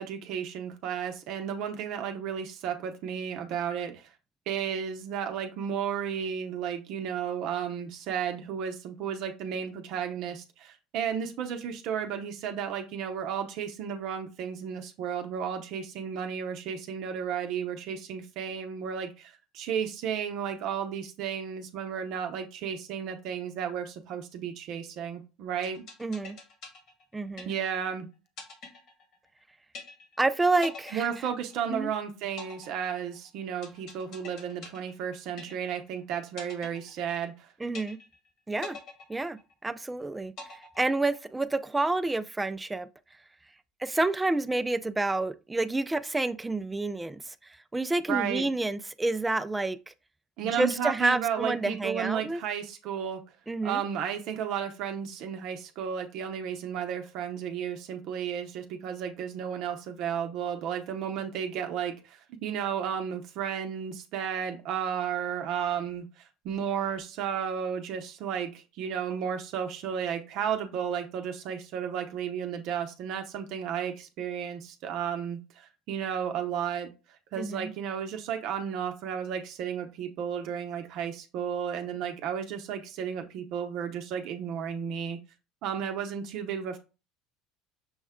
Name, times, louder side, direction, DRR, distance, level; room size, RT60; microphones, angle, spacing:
voice 1, 0.0-4.1 4.5-25.9 27.5-28.1 30.9-37.5 48.1-48.5 50.4-53.2 53.6-76.9 77.3-85.2 85.6-86.8, right 8 dB, 60° right, 0.6 m, -33 dB
sound 1, 25.6-27.9 28.4-29.4 29.7-30.3 30.6-31.9 32.4-35.9 36.4-37.4 37.7-38.3 38.6-39.9 40.4-41.4, left 4 dB, 60° left, 1.4 m, -45 dB
voice 2, 26.0-26.4 27.1-27.5 30.2-31.1 31.7-31.9 37.6-38.0 38.5-38.8 39.1-42.9 43.8-47.3 47.7-49.9 50.5-52.4 53.5-53.8 77.4-77.7, right 2 dB, 10° right, 0.3 m, -29 dB
6.2 x 2.1 x 3.5 m
supercardioid pair, 125°, 0 cm